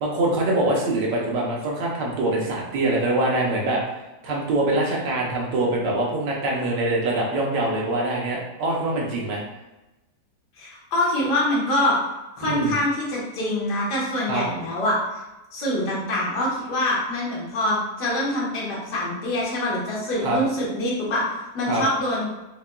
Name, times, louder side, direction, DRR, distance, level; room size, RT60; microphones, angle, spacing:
voice 1, 0.0-3.8 4.2-9.4 12.4-12.7 14.3-14.4 20.2-20.4 21.7-21.8, right 2 dB, 75° right, -3 dB, 1.5 m, -24 dB
voice 2, 10.6-12.0 12.4-15.0 15.5-21.2 21.5-22.3, left 1 dB, 70° left, -6 dB, 1.7 m, -25 dB
5.7 x 2.4 x 2.2 m, 1.0 s
omnidirectional pair, 1.9 m